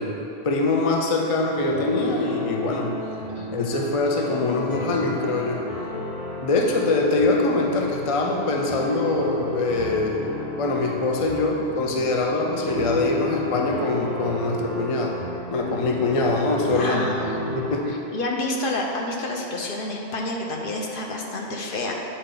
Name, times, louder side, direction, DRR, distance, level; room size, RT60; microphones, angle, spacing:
voice 1, 0.0-3.0 3.5-5.6 6.4-10.2 10.6-15.2 15.5-17.1 17.6-17.9, left 3 dB, 45° left, 1 dB, 0.5 m, -23 dB
sound 1, 1.7-17.7, left 1 dB, 85° left, 1.5 m, -32 dB
voice 2, 16.7-17.4 17.8-21.9, left 2 dB, 60° left, 0 dB, 0.9 m, -29 dB
8.5 x 4.2 x 3.8 m, 3.0 s
omnidirectional pair, 1.1 m